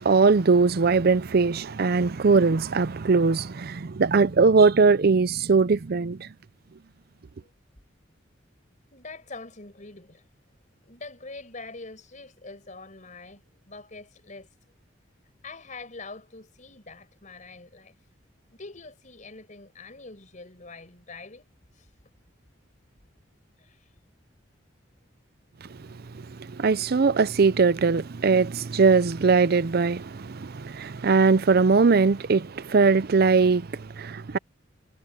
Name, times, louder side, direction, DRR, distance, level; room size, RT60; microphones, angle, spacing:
voice 1, 0.0-6.3 26.4-34.4, right 4 dB, 55° right, 0.5 m, -21 dB
voice 2, 8.9-10.2 10.9-14.5 15.4-17.9 18.5-21.5 21.7-21.9 23.6-23.9 26.1-26.2, left 3 dB, 40° left, 5.2 m, -44 dB
head